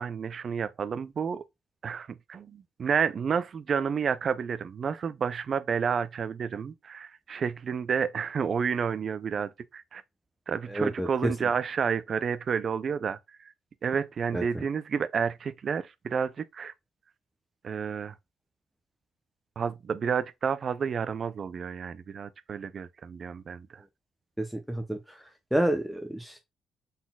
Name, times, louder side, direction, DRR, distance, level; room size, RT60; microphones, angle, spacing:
voice 1, 0.0-1.4 1.8-10.0 10.5-13.5 13.8-16.7 17.6-18.2 19.6-23.8, right 6 dB, 50° right, 0.3 m, -30 dB
voice 2, 10.7-11.3 14.3-14.4 24.4-25.2 25.5-26.4, right 1 dB, 5° right, 0.6 m, -29 dB
3.9 x 3.9 x 2.2 m
cardioid pair, 90°, 0 cm